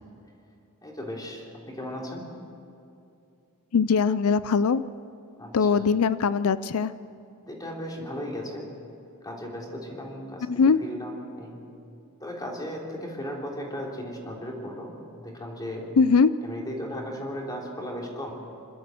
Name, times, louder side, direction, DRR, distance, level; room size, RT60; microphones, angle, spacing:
voice 1, 0.8-2.2 5.4-5.8 7.4-8.6 9.2-10.4 10.8-11.6 12.2-14.9 15.2-15.8 16.4-18.3, equal, 20° left, -1 dB, 3.2 m, -36 dB
voice 2, 3.7-4.8 5.5-6.9 10.5-10.8 16.0-16.3, left 5 dB, 70° left, 16 dB, 0.5 m, -21 dB
27.0 x 12.5 x 7.7 m, 2.6 s
head